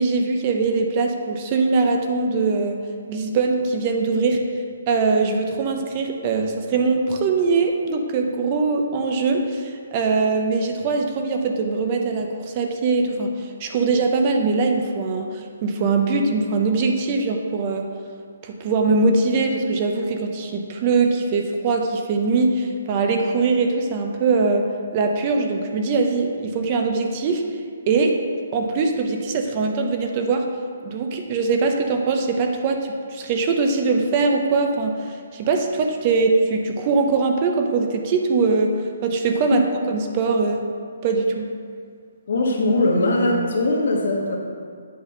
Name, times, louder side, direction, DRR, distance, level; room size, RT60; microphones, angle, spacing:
voice 1, 0.0-2.8 3.1-4.4 4.9-17.9 18.4-27.5 27.9-28.2 28.5-30.5 30.8-38.7 39.0-40.6 41.0-41.5, right 4 dB, 30° right, 4 dB, 0.6 m, -22 dB
voice 2, 42.3-44.4, left 2 dB, 65° left, 0 dB, 1.4 m, -20 dB
8.4 x 4.1 x 5.5 m, 2.2 s
hypercardioid pair, 160°, 0 cm